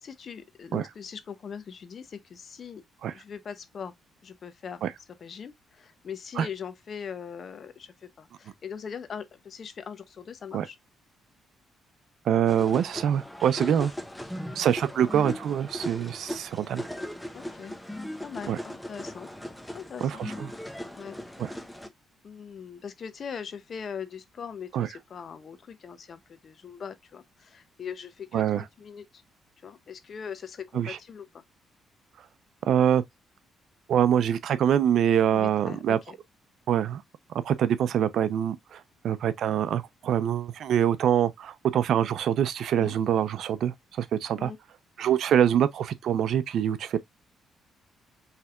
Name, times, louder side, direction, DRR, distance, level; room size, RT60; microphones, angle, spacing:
voice 1, 0.0-2.8 3.1-3.9 4.2-4.8 5.2-10.8 13.5-13.9 14.8-15.1 17.3-17.8 18.2-19.3 19.7-20.2 21.0-21.2 22.2-29.2 29.6-31.4 35.3-36.1 42.7-43.0 44.4-44.6, left 7 dB, 50° left, 0.8 m, -41 dB
voice 2, 12.3-13.9 14.6-16.8 18.5-18.6 20.0-20.5 21.4-21.5 24.7-24.9 28.3-28.6 30.7-31.0 32.7-33.0 33.9-36.0 36.7-37.0 37.4-38.8 39.0-44.5 45.0-47.0, right 9 dB, 70° right, 0.6 m, -25 dB
sound 1, 12.5-21.9, equal, 5° left, 0.8 m, -38 dB
5.7 x 3.4 x 2.4 m
cardioid pair, 90°, 0 cm